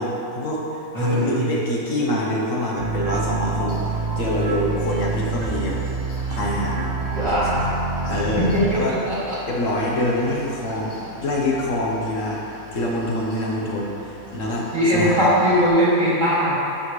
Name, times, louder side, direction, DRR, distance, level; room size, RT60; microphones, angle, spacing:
voice 1, 0.0-3.8 4.2-5.8 6.3-6.9 7.5-7.7 8.0-8.5 8.7-9.0 9.5-10.9 11.2-12.4 12.7-15.3, left 1 dB, 70° left, -3 dB, 1.5 m, -25 dB
voice 2, 0.9-1.4 7.1-7.7 8.0-9.4 14.7-16.5, equal, 35° right, -9 dB, 2.3 m, -20 dB
sound 1, 2.8-8.7, right 4 dB, 85° right, 0.3 m, -27 dB
Mechanical fan, 3.7-15.7, left 3 dB, 85° left, 2.4 m, -42 dB
10.5 x 6.3 x 3.3 m, 2.8 s
omnidirectional pair, 1.4 m